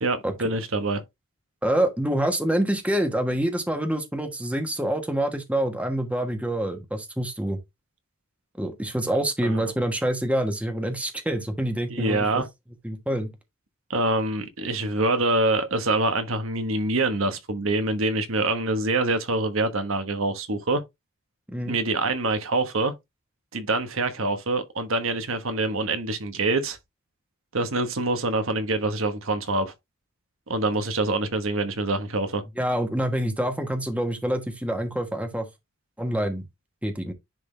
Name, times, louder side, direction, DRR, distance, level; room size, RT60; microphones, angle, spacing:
voice 1, 0.0-1.0 9.4-9.6 11.9-12.5 13.9-20.8 21.7-22.9 23.5-26.8 27.5-29.7 30.5-32.4, right 2 dB, 70° right, 1.2 m, -25 dB
voice 2, 1.6-7.6 8.6-12.4 12.8-13.3 21.5-21.8 32.6-35.5 36.0-36.4 36.8-37.1, right 1 dB, 5° right, 1.2 m, -26 dB
10.5 x 3.8 x 3.3 m
head